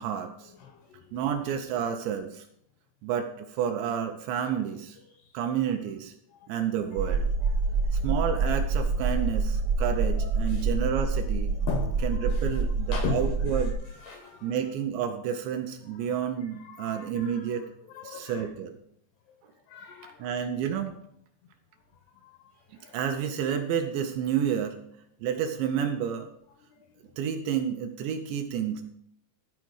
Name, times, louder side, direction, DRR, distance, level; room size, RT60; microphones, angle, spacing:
voice 1, 0.0-0.5 1.1-2.5 3.0-5.0 5.3-6.1 6.5-7.3 7.9-11.5 12.0-13.8 14.4-17.7 18.0-18.8 20.2-21.0 22.9-24.8 25.2-26.3 27.2-28.8, right 8 dB, 75° right, 2.8 m, -30 dB
voice 2, 0.6-1.0 6.3-6.5 7.4-7.6 7.9-8.0 10.5-10.6 11.7-12.6 12.9-13.7 14.0-14.6 15.9-16.1 16.6-18.5 19.7-20.3 22.2-22.5 22.8-23.0, left 6 dB, 80° left, 2.5 m, -39 dB
sound 1, 7.0-13.7, right 4 dB, 60° right, 1.8 m, -27 dB
13.5 x 4.8 x 6.3 m
omnidirectional pair, 5.6 m